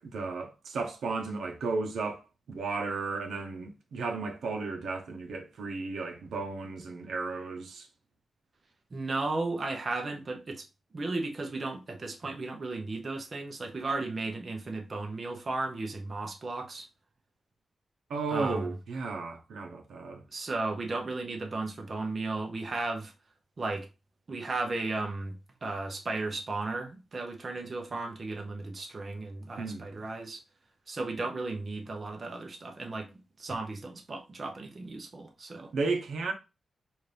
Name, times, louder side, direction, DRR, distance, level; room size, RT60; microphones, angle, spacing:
voice 1, 0.0-7.9 18.1-20.2 29.6-29.8 35.5-36.3, right 3 dB, 85° right, 0.8 m, -34 dB
voice 2, 8.9-10.7 10.9-16.9 18.3-18.7 20.3-23.1 23.6-23.9 24.3-30.4 30.9-33.1 33.4-35.7, right 3 dB, 40° right, 0.8 m, -35 dB
4.2 x 2.5 x 3.3 m
wide cardioid pair, 110°, 0 cm